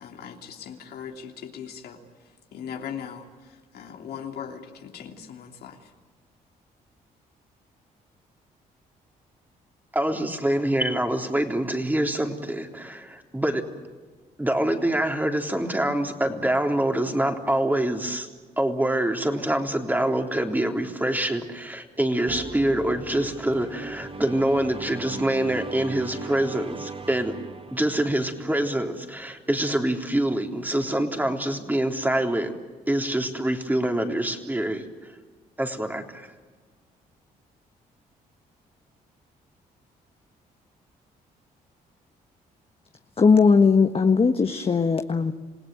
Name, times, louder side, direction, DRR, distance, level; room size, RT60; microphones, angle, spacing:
voice 1, 0.0-2.0 2.5-5.8, left 8 dB, 75° left, 3 dB, 3.1 m, -39 dB
voice 2, 9.9-13.7 14.4-18.3 18.6-27.4 27.7-32.6 32.9-35.1 35.6-36.3, right 1 dB, 10° right, 4 dB, 3.5 m, -25 dB
sound 1, 22.3-28.7, right 3 dB, 35° right, 2.0 m, -39 dB
voice 3, 43.2-45.3, left 5 dB, 35° left, 7 dB, 1.4 m, -19 dB
28.0 x 17.5 x 9.3 m, 1.4 s
supercardioid pair, 70°, 17 cm